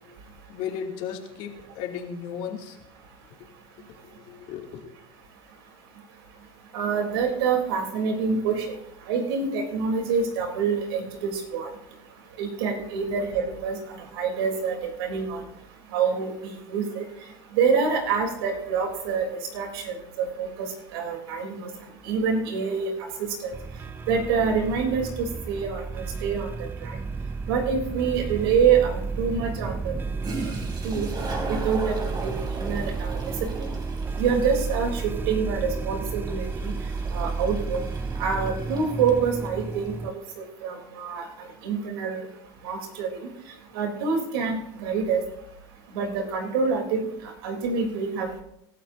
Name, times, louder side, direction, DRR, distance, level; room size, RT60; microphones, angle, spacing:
voice 1, 0.5-2.8 3.9-4.9, left 8 dB, 65° left, 1 dB, 2.8 m, -35 dB
voice 2, 6.7-8.8 9.1-11.7 12.4-15.4 15.9-17.0 17.5-19.3 19.5-21.7 22.0-22.9 23.2-23.5 24.1-26.5 26.8-27.0 27.5-29.9 30.8-31.1 31.5-33.7 34.2-36.7 37.1-37.8 38.2-41.3 41.6-42.3 42.6-43.1 43.7-45.2 45.9-47.1 47.4-48.4, right 6 dB, 90° right, 2 dB, 3.7 m, -26 dB
sound 1, 23.5-40.1, right 4 dB, 15° right, 0.5 m, -32 dB
Toilet flush, 30.2-39.6, right 2 dB, 35° right, 4.1 m, -38 dB
24.5 x 12.5 x 2.8 m, 0.80 s
supercardioid pair, 115°, 12 cm